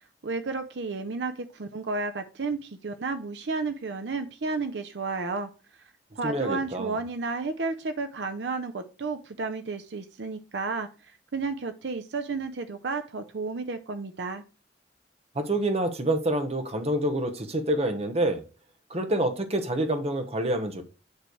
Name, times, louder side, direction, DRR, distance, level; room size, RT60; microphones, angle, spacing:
voice 1, 0.2-5.5 6.1-14.4, right 4 dB, 75° right, 8 dB, 0.6 m, -32 dB
voice 2, 6.2-7.0 15.3-18.4 18.9-20.8, right 1 dB, 35° right, 6 dB, 1.1 m, -27 dB
9.5 x 3.2 x 4.6 m, 0.34 s
head